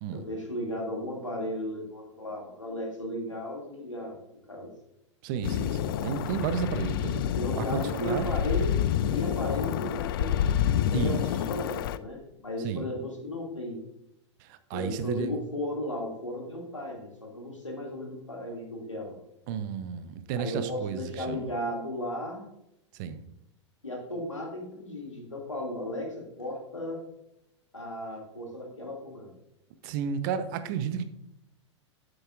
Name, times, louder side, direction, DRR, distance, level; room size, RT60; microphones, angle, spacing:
voice 1, 0.1-4.2 4.5-4.7 7.4-8.8 9.1-13.8 14.7-19.2 20.4-22.4 23.8-27.0 27.7-29.3, left 1 dB, 85° left, 0 dB, 2.4 m, -35 dB
voice 2, 5.2-8.4 10.9-11.2 12.6-12.9 14.4-15.3 19.5-21.5 22.9-23.2 29.8-31.0, right 7 dB, 40° right, 11 dB, 0.8 m, -32 dB
sound 1, 5.4-12.0, left 10 dB, 45° left, 0.4 m, -28 dB
10.0 x 7.8 x 2.5 m, 0.85 s
figure-of-eight pair, 95°, 16 cm